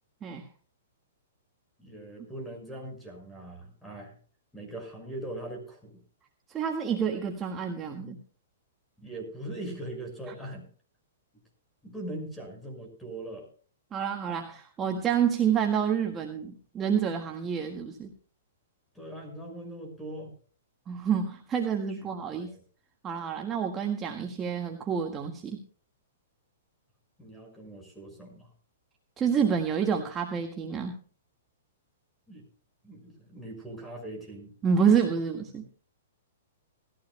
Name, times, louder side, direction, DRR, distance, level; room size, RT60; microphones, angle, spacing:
voice 1, 1.8-4.1 4.5-6.0 9.0-10.7 11.8-13.5 18.9-20.3 22.3-22.6 27.2-28.5 32.3-32.4 32.8-34.5, right 1 dB, 5° left, 3 dB, 5.9 m, -41 dB
voice 2, 6.5-8.2 13.9-18.1 20.9-22.5 23.0-25.6 29.2-31.0 34.6-35.7, right 7 dB, 20° right, 3 dB, 1.7 m, -28 dB
19.5 x 15.0 x 2.2 m, 0.41 s
hypercardioid pair, 135°, 0 cm